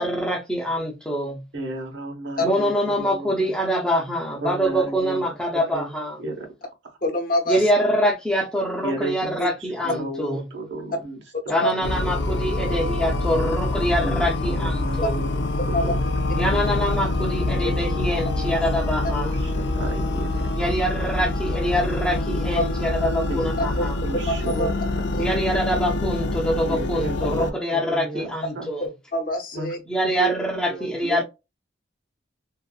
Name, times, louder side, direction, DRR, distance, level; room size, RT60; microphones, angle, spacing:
voice 1, 0.0-1.4 2.4-6.2 7.5-10.4 11.5-15.2 16.3-19.3 20.6-24.0 25.2-28.9 29.9-31.2, equal, 5° left, 0.6 m, -25 dB
voice 2, 1.5-3.6 4.4-6.5 6.8-7.0 8.8-11.9 14.0-16.1 18.9-20.5 23.2-24.7 25.0-25.4 26.6-28.7 29.5-31.0, right 2 dB, 75° right, 1.0 m, -34 dB
voice 3, 7.0-7.6 9.4-9.5 11.6-11.7 15.0-15.1 15.7-15.8 22.6-22.7 23.8-23.9 24.3-24.7 25.2-25.3 28.8-29.8 31.0-31.2, left 1 dB, 50° left, 0.8 m, -25 dB
sound 1, 11.8-27.5, left 2 dB, 65° left, 0.4 m, -25 dB
2.7 x 2.5 x 2.3 m
head